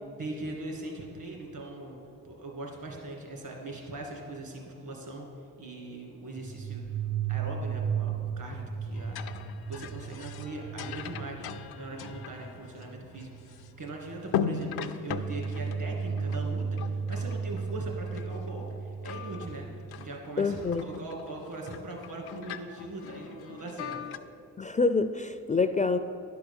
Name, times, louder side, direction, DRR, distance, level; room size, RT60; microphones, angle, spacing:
voice 1, 0.2-2.0 2.2-5.3 5.6-7.0 7.3-9.4 9.7-24.0, right 2 dB, 65° right, 0 dB, 2.4 m, -40 dB
sound 1, 6.3-14.7, right 8 dB, 80° right, 1.8 m, -36 dB
sound 2, 8.9-13.9 14.2-17.8 18.0-18.8 19.0-24.2, left 8 dB, 80° left, 0.5 m, -39 dB
sound 3, 15.1-20.1, right 4 dB, 45° right, 0.6 m, -34 dB
voice 2, 20.4-20.8 24.6-26.0, left 4 dB, 20° left, 10 dB, 0.4 m, -26 dB
11.0 x 4.7 x 7.0 m, 2.8 s
supercardioid pair, 45°, 37 cm